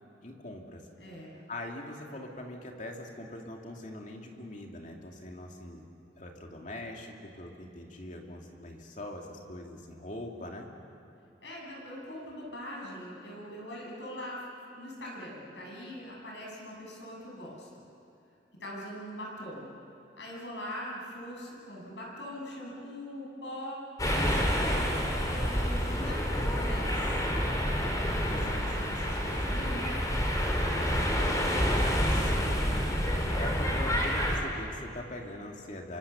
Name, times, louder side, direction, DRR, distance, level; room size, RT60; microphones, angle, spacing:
voice 1, 0.2-0.9 1.5-5.8 6.2-10.7 28.3-29.0 32.1-36.0, left 1 dB, 45° left, 1 dB, 2.8 m, -42 dB
voice 2, 1.0-1.4 11.4-17.8 18.6-19.7 20.2-27.2 27.7-29.9, equal, 85° left, -2 dB, 7.4 m, -42 dB
sound 1, 24.0-34.4, equal, 20° left, 3.3 m, -28 dB
27.5 x 25.0 x 7.1 m, 2.6 s
head